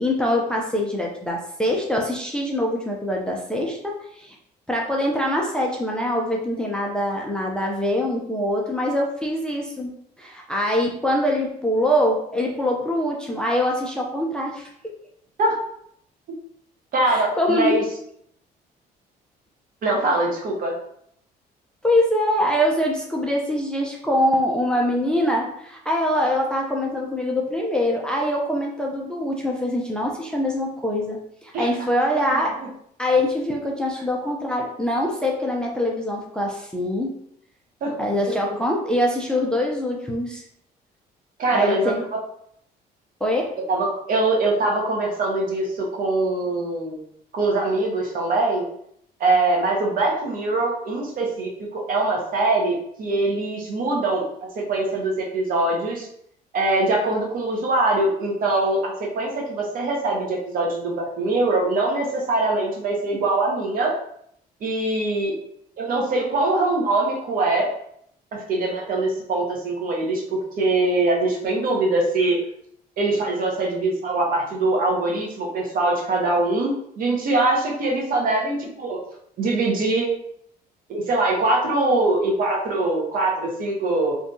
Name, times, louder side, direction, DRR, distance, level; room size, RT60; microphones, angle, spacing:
voice 1, 0.0-4.4 4.7-14.7 17.1-17.8 21.8-32.5 33.0-37.1 38.0-40.4 41.5-42.0 43.2-43.5, left 1 dB, 5° left, -1 dB, 0.4 m, -24 dB
voice 2, 16.9-17.8 19.8-20.8 31.5-31.7 32.0-32.7 37.8-37.9 38.3-38.4 41.4-42.2 43.7-47.0 47.3-48.6 49.2-56.1 56.5-63.9 64.6-65.3 65.8-67.7 68.3-72.4 73.0-79.0 79.4-80.1 80.9-84.1, right 2 dB, 55° right, -1 dB, 0.8 m, -23 dB
2.6 x 2.3 x 2.6 m, 0.69 s
cardioid pair, 110°, 17 cm